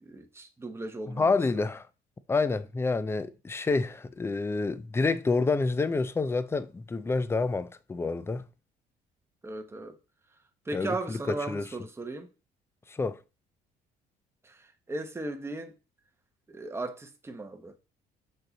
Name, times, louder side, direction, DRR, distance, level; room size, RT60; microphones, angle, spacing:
voice 1, 0.0-1.4 9.4-10.0 10.6-12.3 14.4-15.7 16.5-17.8, right 2 dB, 15° right, 0.9 m, -37 dB
voice 2, 1.1-1.9 2.3-8.5 10.7-11.2 11.5-11.6 12.9-13.2, left 3 dB, 15° left, 0.4 m, -28 dB
6.4 x 3.8 x 3.9 m
cardioid pair, 110°, 17 cm